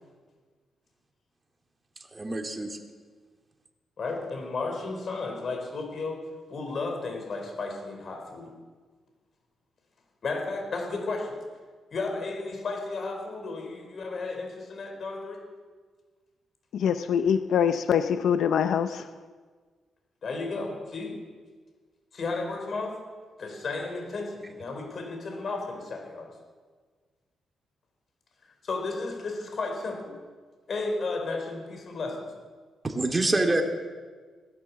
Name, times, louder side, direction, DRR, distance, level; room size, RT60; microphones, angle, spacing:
voice 1, 2.1-2.8 32.8-33.6, right 2 dB, 25° right, 2 dB, 2.5 m, -26 dB
voice 2, 4.0-6.2 6.5-8.5 10.2-11.3 11.9-15.4 20.2-21.1 22.1-22.9 23.4-26.3 28.6-30.1 30.7-32.3, left 3 dB, 50° left, 2 dB, 4.5 m, -33 dB
voice 3, 16.7-19.1, left 8 dB, 75° left, 11 dB, 0.6 m, -24 dB
18.0 x 10.5 x 7.2 m, 1.5 s
cardioid pair, 85°, 0 cm